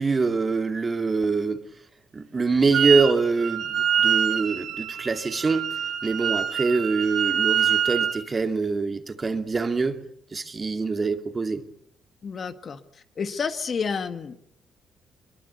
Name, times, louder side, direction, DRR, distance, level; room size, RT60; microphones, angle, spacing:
voice 1, 0.0-1.6 2.1-5.7 6.0-10.0 10.3-11.6, right 4 dB, 30° right, 2.5 m, -24 dB
Wind instrument woodwind instrument, 2.7-3.1 3.4-8.2, right 8 dB, 70° right, 2.9 m, -25 dB
voice 2, 12.2-12.8 13.2-14.4, left 5 dB, 45° left, 1.8 m, -29 dB
22.5 x 22.5 x 8.1 m
cardioid pair, 90°, 0 cm